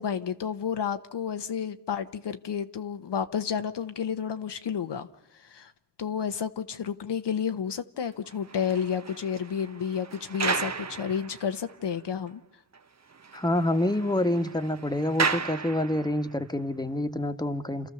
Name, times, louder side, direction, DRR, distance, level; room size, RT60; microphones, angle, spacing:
voice 1, 0.0-5.1 5.4-5.7 6.0-12.4, left 7 dB, 70° left, 0.9 m, -31 dB
sound 1, 8.3-11.8 12.3-12.4 12.7-12.8 13.1-16.4, right 5 dB, 40° right, 1.0 m, -34 dB
voice 2, 13.3-17.9, left 1 dB, 10° left, 1.3 m, -27 dB
29.5 x 13.0 x 6.9 m
cardioid pair, 45°, 44 cm